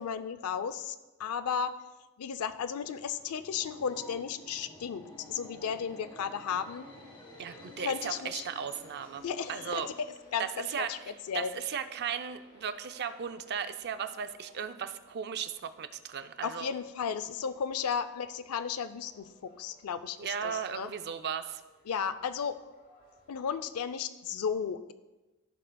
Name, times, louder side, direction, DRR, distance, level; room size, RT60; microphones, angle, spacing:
voice 1, 0.0-1.8 2.2-6.9 7.8-8.4 9.2-9.9 10.3-11.0 11.3-11.5 16.4-20.9 21.9-22.6 23.3-24.9, left 7 dB, 85° left, 12 dB, 0.4 m, -34 dB
Subway metro underground, 2.9-10.7, left 1 dB, 25° left, 1.5 m, -51 dB
Train, 7.3-23.9, left 1 dB, 50° left, 2.6 m, -61 dB
voice 2, 7.4-9.2 9.5-9.9 10.4-10.9 11.3-16.7 20.2-21.6, right 8 dB, 50° right, 10 dB, 0.4 m, -36 dB
14.5 x 6.6 x 2.2 m, 1.1 s
head